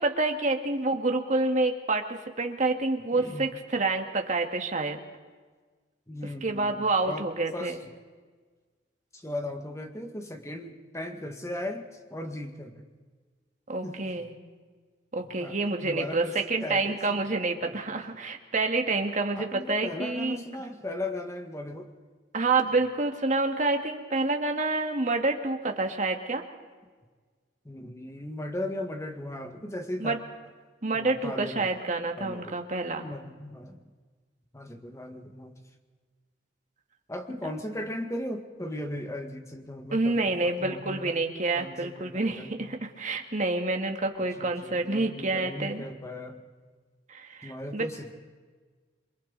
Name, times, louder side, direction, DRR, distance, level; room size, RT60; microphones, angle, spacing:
voice 1, 0.0-5.0 6.4-7.8 13.7-14.3 15.1-20.4 22.3-26.4 30.0-30.2 30.8-33.1 37.4-37.5 39.9-45.8 47.1-47.9, right 3 dB, 45° right, 4 dB, 1.8 m, -28 dB
voice 2, 3.1-3.5 6.1-7.3 7.5-7.9 9.1-12.9 13.8-14.3 15.4-16.4 16.6-17.2 17.6-17.8 19.4-21.9 27.7-30.2 30.9-31.7 32.2-32.6 33.0-33.8 34.5-35.6 37.1-41.3 41.6-42.7 44.4-46.4 47.4-48.1, left 1 dB, 15° left, 5 dB, 1.7 m, -37 dB
28.0 x 23.5 x 4.0 m, 1.4 s
head